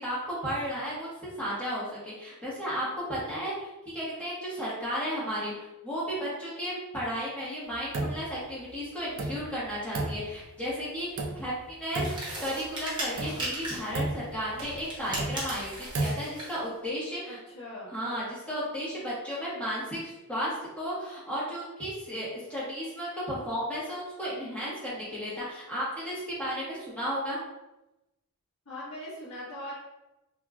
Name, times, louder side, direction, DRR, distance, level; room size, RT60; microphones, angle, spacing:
voice 1, 0.0-3.7 3.9-17.4 17.9-27.4, equal, 5° left, -9 dB, 1.3 m, -34 dB
sound 1, 7.7-8.4 8.7-8.8 9.2-10.7 11.2-11.7 11.9-12.7 13.1-16.1, right 2 dB, 60° right, 0.5 m, -34 dB
sound 2, 11.9-14.0 14.8-16.6, right 1 dB, 20° right, 0.9 m, -37 dB
voice 2, 17.3-18.0 28.6-29.7, left 1 dB, 75° left, -11 dB, 1.3 m, -40 dB
3.4 x 2.9 x 2.4 m, 0.95 s
head